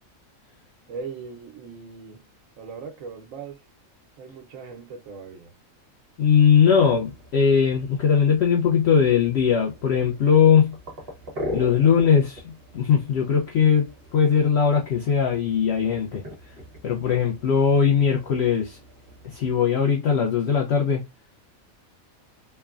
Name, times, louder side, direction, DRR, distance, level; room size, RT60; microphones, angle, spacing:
voice 1, 0.9-2.2 2.6-3.6 4.2-5.5, right 5 dB, 70° right, 1.1 m, -39 dB
voice 2, 6.2-10.8 11.5-16.2 16.8-18.8 19.2-21.0, left 7 dB, 65° left, 0.7 m, -20 dB
sound 1, 6.7-19.5, left 1 dB, 50° right, 1.2 m, -41 dB
3.2 x 2.2 x 2.3 m
omnidirectional pair, 1.4 m